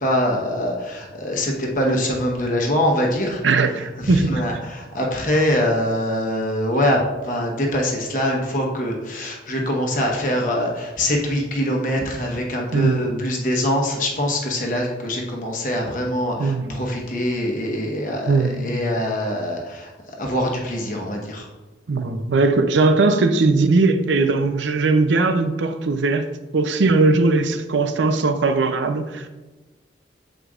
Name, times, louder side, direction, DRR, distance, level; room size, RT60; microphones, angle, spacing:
voice 1, 0.0-3.4 4.0-21.5, left 1 dB, 45° left, 0 dB, 1.1 m, -23 dB
voice 2, 3.4-4.5 12.7-13.2 16.4-16.8 18.3-18.8 21.9-26.3 26.5-29.3, right 3 dB, 90° right, 8 dB, 0.5 m, -19 dB
7.7 x 5.0 x 2.4 m, 1.2 s
head